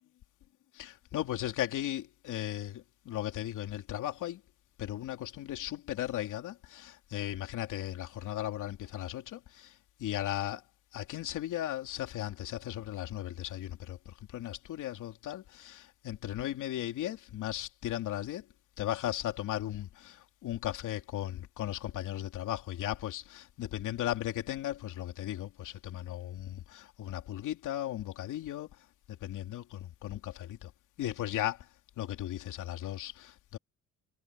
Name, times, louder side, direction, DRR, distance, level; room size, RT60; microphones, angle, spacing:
voice 1, 0.8-4.4 4.8-9.7 10.0-10.6 10.9-14.0 14.3-18.4 18.8-28.7 29.2-30.7 31.0-31.6 32.0-33.6, left 13 dB, 85° left, 2.9 m, -36 dB
cardioid pair, 90°, 30 cm